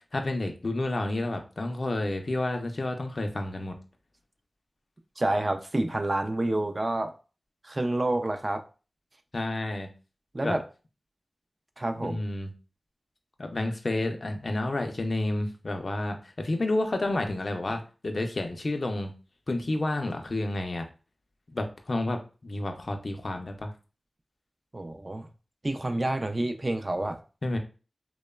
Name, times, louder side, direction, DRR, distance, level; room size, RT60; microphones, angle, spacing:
voice 1, 0.1-3.8 9.3-9.9 10.4-10.6 12.0-12.5 13.4-19.1 19.5-20.9 21.5-23.7 27.4-27.6, left 2 dB, 60° left, 5 dB, 0.4 m, -30 dB
voice 2, 5.2-7.1 7.6-8.6 10.3-10.6 11.8-12.2 24.7-25.3 25.6-27.2, right 1 dB, 40° right, 7 dB, 0.3 m, -28 dB
2.9 x 2.0 x 2.2 m, 0.34 s
wide cardioid pair, 55°, 0 cm